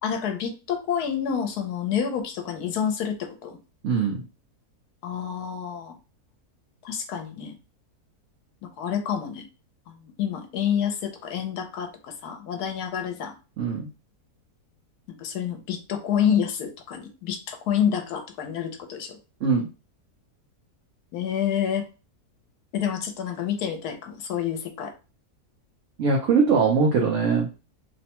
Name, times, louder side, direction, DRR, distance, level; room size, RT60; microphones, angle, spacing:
voice 1, 0.0-3.6 5.0-6.0 6.8-7.5 8.6-9.5 9.9-13.3 15.2-19.2 21.1-21.8 22.7-24.9, left 8 dB, 90° left, 6 dB, 1.2 m, -28 dB
voice 2, 3.8-4.2 13.6-13.9 19.4-19.7 26.0-27.5, right 5 dB, 60° right, -1 dB, 0.9 m, -21 dB
3.1 x 2.1 x 2.8 m, 0.31 s
omnidirectional pair, 1.6 m